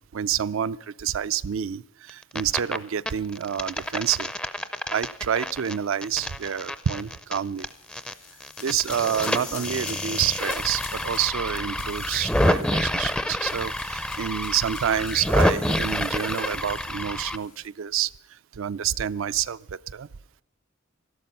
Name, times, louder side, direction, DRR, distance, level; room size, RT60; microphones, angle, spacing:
voice 1, 0.0-4.3 4.9-7.7 8.6-18.1 18.5-20.1, right 9 dB, 75° right, 15 dB, 0.4 m, -28 dB
sound 1, 2.1-2.8 3.1-8.1 8.4-17.4, left 1 dB, 5° left, 0.4 m, -28 dB
sound 2, 7.7-17.7, left 9 dB, 75° left, 2.9 m, -44 dB
13.0 x 12.0 x 5.5 m, 0.83 s
head